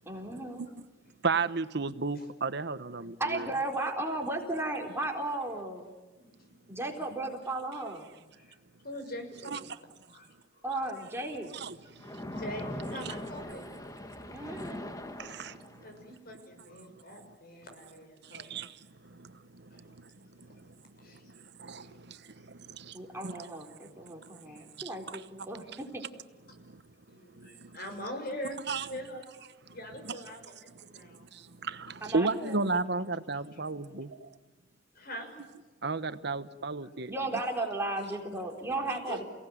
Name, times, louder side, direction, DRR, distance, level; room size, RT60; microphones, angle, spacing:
voice 1, 0.1-0.7 3.2-5.8 6.7-8.0 10.6-11.5 14.3-14.8 22.9-23.7 24.0-26.0 32.0-32.6 37.1-39.2, right 2 dB, 15° right, 1 dB, 4.0 m, -35 dB
voice 2, 1.2-3.1 9.5-9.6 11.6-11.7 15.2-15.6 18.5-18.7 21.6-22.2 22.8-22.9 23.2-23.4 28.7-28.8 31.6-34.1 35.8-37.1, right 4 dB, 65° right, 12 dB, 1.1 m, -32 dB
voice 3, 6.1-6.7 8.4-8.6 8.8-9.8 10.1-10.9 12.2-13.7 15.3-15.5 15.8-18.6 19.7-19.9 20.4-20.6 21.0-21.2 21.8-22.0 24.2-24.7 27.1-29.2 29.7-31.3 33.5-33.6 34.9-35.3 36.8-36.9 39.1-39.3, equal, 55° left, 5 dB, 6.4 m, -43 dB
Splash splatter, 12.0-16.0, left 1 dB, 20° left, 1.6 m, -41 dB
29.5 x 18.0 x 9.5 m, 1.2 s
head